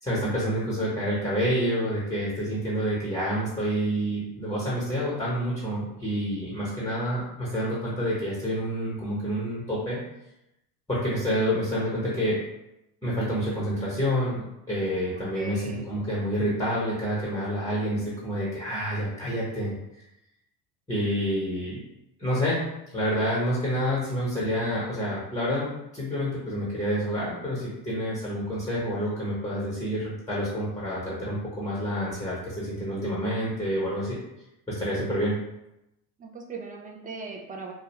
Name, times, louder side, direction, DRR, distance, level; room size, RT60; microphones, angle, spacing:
voice 1, 0.0-10.0 10.9-12.4 13.0-20.0 20.9-21.8 22.2-22.6 22.9-34.2 34.7-35.4, equal, 10° left, -7 dB, 0.9 m, -28 dB
voice 2, 15.3-15.9 36.2-37.7, right 4 dB, 20° right, 1 dB, 0.4 m, -38 dB
2.2 x 2.1 x 3.0 m, 0.88 s
hypercardioid pair, 70°, 47 cm